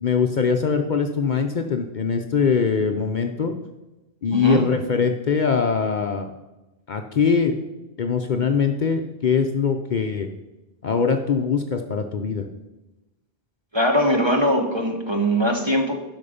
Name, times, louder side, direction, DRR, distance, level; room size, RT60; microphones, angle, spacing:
voice 1, 0.0-3.5 4.2-6.3 6.9-7.6 8.0-10.3 10.8-12.5, left 5 dB, 50° left, 5 dB, 0.7 m, -22 dB
voice 2, 13.7-16.0, equal, 25° right, 3 dB, 1.1 m, -21 dB
11.0 x 6.2 x 5.1 m, 1.0 s
omnidirectional pair, 1.1 m